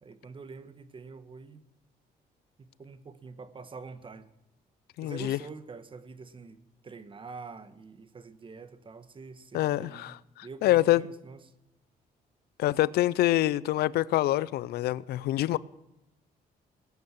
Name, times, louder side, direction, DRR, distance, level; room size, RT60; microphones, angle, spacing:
voice 1, 0.0-1.6 2.6-4.3 5.0-10.1 10.4-11.5, right 4 dB, 30° right, 1.3 m, -46 dB
voice 2, 5.0-5.4 9.5-11.0 12.6-15.6, left 15 dB, 90° left, 0.5 m, -26 dB
20.0 x 9.4 x 7.5 m
cardioid pair, 115°, 16 cm